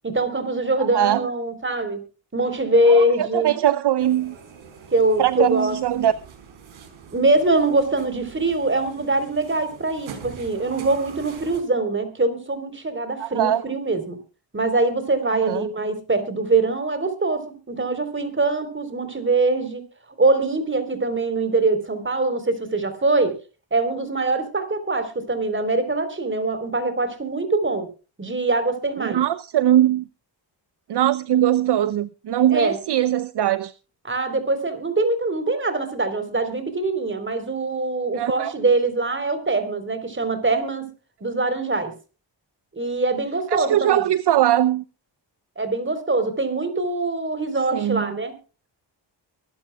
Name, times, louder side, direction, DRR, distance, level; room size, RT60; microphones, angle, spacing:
voice 1, 0.0-2.0 2.3-3.5 4.9-5.8 7.1-14.2 14.5-19.8 20.2-23.4 23.7-27.9 28.2-29.2 32.5-32.8 34.0-40.9 41.2-41.9 42.7-44.1 45.6-48.3, right 2 dB, 25° right, 3.9 m, -23 dB
voice 2, 0.8-1.3 2.9-4.3 5.2-6.1 13.2-13.6 15.4-15.7 29.0-30.0 30.9-33.7 38.1-38.5 43.5-44.8 47.7-48.1, right 12 dB, 60° right, 0.7 m, -21 dB
sound 1, 4.0-11.6, right 6 dB, 85° right, 4.5 m, -43 dB
23.5 x 12.5 x 2.3 m
cardioid pair, 85°, 47 cm